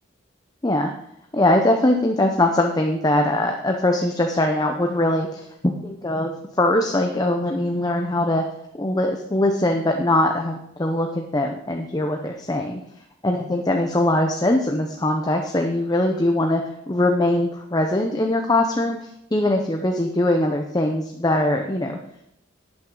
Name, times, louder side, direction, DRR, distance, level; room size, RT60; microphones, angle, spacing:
voice 1, 1.3-5.5 5.8-6.3 6.6-8.4 8.8-12.8 13.2-22.0, left 1 dB, 20° left, 3 dB, 0.7 m, -21 dB
12.0 x 8.8 x 3.8 m, 0.77 s
head